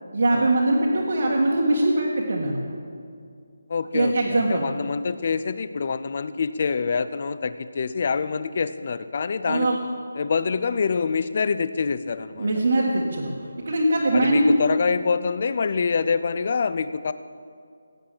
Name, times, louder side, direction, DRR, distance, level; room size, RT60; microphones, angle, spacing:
voice 1, 0.1-2.6 3.9-4.7 9.4-9.8 12.4-14.5, right 1 dB, 45° right, -4 dB, 1.8 m, -22 dB
voice 2, 3.7-9.7 10.2-12.5 14.1-17.1, left 5 dB, 30° left, 13 dB, 0.4 m, -26 dB
17.0 x 8.6 x 7.7 m, 2.3 s
hypercardioid pair, 180°, 0 cm